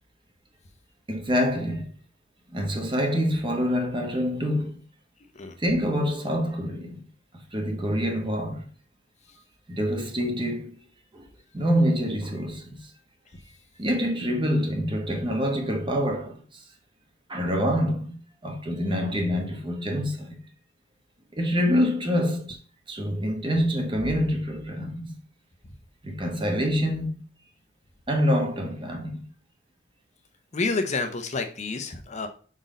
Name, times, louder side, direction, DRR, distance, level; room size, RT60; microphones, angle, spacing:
voice 1, 1.1-1.8 2.5-4.8 5.6-7.0 7.5-8.6 9.7-10.8 11.1-11.2 11.5-12.9 13.8-16.6 17.3-20.4 21.3-22.6 22.9-25.1 26.0-27.1 28.1-29.2, equal, 25° right, 1.1 m, -26 dB
voice 2, 30.5-32.3, left 3 dB, 35° left, 0.7 m, -29 dB
5.2 x 4.1 x 5.0 m
head